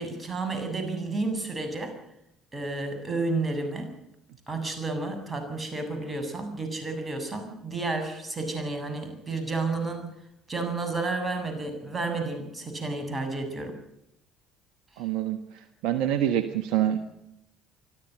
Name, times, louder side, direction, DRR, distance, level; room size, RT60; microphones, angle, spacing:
voice 1, 0.0-1.9 2.5-3.9 4.5-10.1 10.5-13.8, right 3 dB, 25° right, 6 dB, 7.4 m, -31 dB
voice 2, 15.0-15.4 15.8-17.0, right 11 dB, 65° right, 10 dB, 1.3 m, -25 dB
25.0 x 13.5 x 7.9 m, 0.81 s
hypercardioid pair, 55°, 0 cm